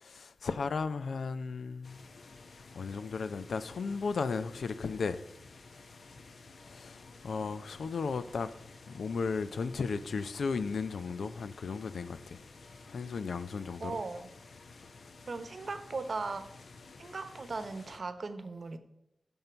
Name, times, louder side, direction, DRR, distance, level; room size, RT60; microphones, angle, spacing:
voice 1, 0.0-2.0 2.7-5.2 6.7-8.5 8.9-12.4 12.9-14.0, left 4 dB, 90° left, 0.6 m, -35 dB
sound 1, 1.8-18.0, left 3 dB, 70° left, 1.0 m, -53 dB
voice 2, 13.8-14.3 15.3-16.5 17.0-18.8, right 3 dB, 50° right, 1.0 m, -38 dB
15.5 x 5.5 x 4.5 m
wide cardioid pair, 135°, 0 cm